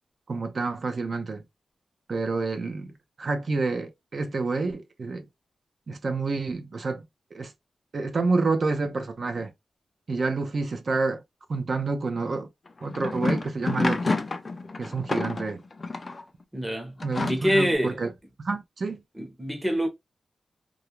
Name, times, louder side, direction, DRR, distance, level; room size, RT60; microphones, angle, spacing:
voice 1, 0.3-1.4 2.1-2.9 3.2-5.2 5.9-7.0 7.3-7.5 7.9-9.5 10.1-11.2 11.5-12.5 12.8-14.2 14.8-15.6 17.0-18.1 18.4-19.0, right 3 dB, 45° right, 0.5 m, -28 dB
sound 1, 12.7-16.2 17.0-17.8, left 3 dB, 30° left, 0.3 m, -29 dB
voice 2, 16.5-17.0 17.2-18.0 19.1-19.9, equal, 10° right, 0.8 m, -25 dB
2.4 x 2.1 x 2.9 m
wide cardioid pair, 150°, 0 cm